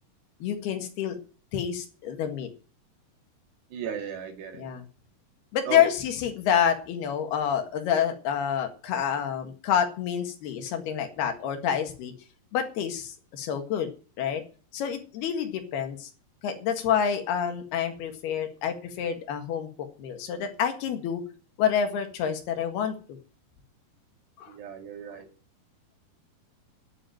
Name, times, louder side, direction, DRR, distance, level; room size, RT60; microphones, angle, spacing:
voice 1, 0.4-1.2 1.5-2.5 4.5-4.9 5.5-12.1 12.5-13.9 14.2-14.4 14.7-16.1 16.4-21.2 21.6-23.0 24.4-24.5, left 8 dB, 75° left, 6 dB, 3.7 m, -28 dB
voice 2, 3.7-4.6 5.7-5.8 24.5-25.3, right 8 dB, 90° right, 5 dB, 4.5 m, -35 dB
11.0 x 8.1 x 9.1 m, 0.37 s
omnidirectional pair, 4.7 m